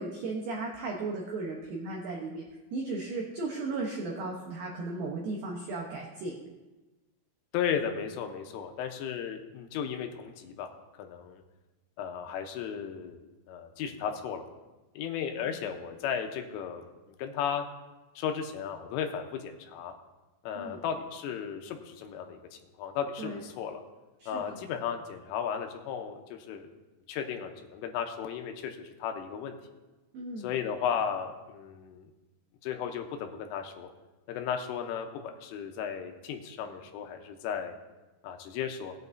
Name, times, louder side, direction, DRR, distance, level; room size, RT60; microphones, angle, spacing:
voice 1, 0.0-2.4 2.7-6.3 15.4-15.6 20.5-20.8 23.2-23.4 24.2-24.6 30.1-30.5, right 3 dB, 85° right, -1 dB, 2.0 m, -36 dB
voice 2, 7.5-10.7 11.0-11.4 12.0-14.4 15.0-16.9 17.2-17.7 18.2-19.9 20.4-22.4 22.8-23.8 24.3-26.7 27.1-29.6 30.4-32.1 32.6-33.9 34.3-35.1 35.4-37.7 38.2-38.9, left 8 dB, 85° left, 5 dB, 3.3 m, -35 dB
18.5 x 8.8 x 2.7 m, 1.1 s
omnidirectional pair, 5.8 m